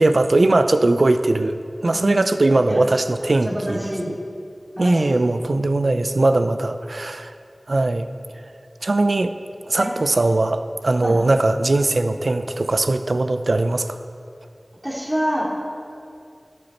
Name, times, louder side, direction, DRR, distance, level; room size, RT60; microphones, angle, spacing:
voice 1, 0.0-1.6 1.8-4.2 4.8-7.3 7.7-8.1 8.8-9.3 9.7-14.0, right 2 dB, 85° right, 9 dB, 0.5 m, -20 dB
voice 2, 1.8-2.3 2.7-2.8 3.4-4.1 4.8-5.2 9.8-9.9 11.0-11.2 14.8-15.4, equal, 20° right, -5 dB, 2.7 m, -26 dB
12.0 x 8.0 x 4.3 m, 2.4 s
wide cardioid pair, 45°, 0 cm